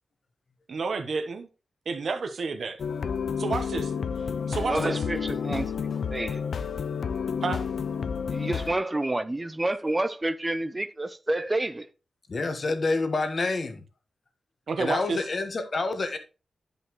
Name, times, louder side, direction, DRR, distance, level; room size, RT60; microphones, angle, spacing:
voice 1, 0.7-1.5 1.9-2.8 3.4-3.9 4.5-5.0 7.4-7.6 14.7-15.2, right 4 dB, 55° right, 0.9 m, -30 dB
sound 1, 2.8-8.8, left 6 dB, 60° left, 0.4 m, -30 dB
voice 2, 4.7-6.4 8.3-11.9, right 2 dB, 15° right, 0.5 m, -29 dB
voice 3, 12.3-13.8 14.8-16.2, left 3 dB, 40° left, 1.2 m, -28 dB
11.0 x 5.4 x 3.0 m
wide cardioid pair, 150°, 0 cm